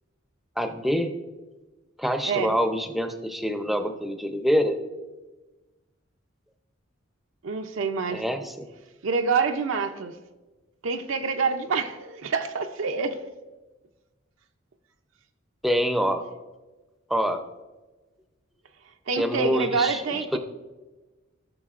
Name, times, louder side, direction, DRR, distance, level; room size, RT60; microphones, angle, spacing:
voice 1, 0.6-1.1 2.0-4.8 8.1-8.7 15.6-16.2 17.1-17.4 19.2-20.4, equal, ahead, 7 dB, 0.5 m, -26 dB
voice 2, 7.4-8.2 9.0-10.2 10.8-13.2 19.1-20.4, right 5 dB, 65° right, 6 dB, 0.5 m, -26 dB
15.0 x 6.5 x 2.4 m, 1.2 s
head